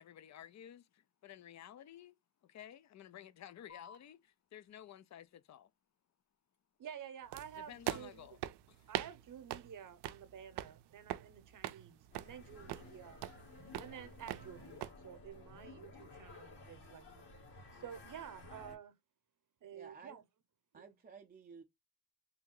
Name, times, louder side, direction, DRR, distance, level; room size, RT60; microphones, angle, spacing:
voice 1, 0.0-2.1 2.4-5.7 7.6-8.4 8.7-8.9, left 10 dB, 45° left, 0.5 m, -54 dB
sound 1, 3.7-10.7, left 5 dB, 30° left, 0.8 m, -66 dB
voice 2, 6.8-8.3 8.9-13.2 13.8-17.3 17.7-18.9 19.6-20.2 20.7-20.9, right 9 dB, 50° right, 0.9 m, -51 dB
sound 2, 7.3-14.9, right 14 dB, 80° right, 0.5 m, -44 dB
sound 3, 12.1-18.8, left 2 dB, 75° left, 2.1 m, -55 dB
voice 3, 19.7-20.2 20.7-21.6, right 5 dB, 25° right, 0.5 m, -54 dB
3.5 x 2.7 x 3.7 m
cardioid pair, 105°, 40 cm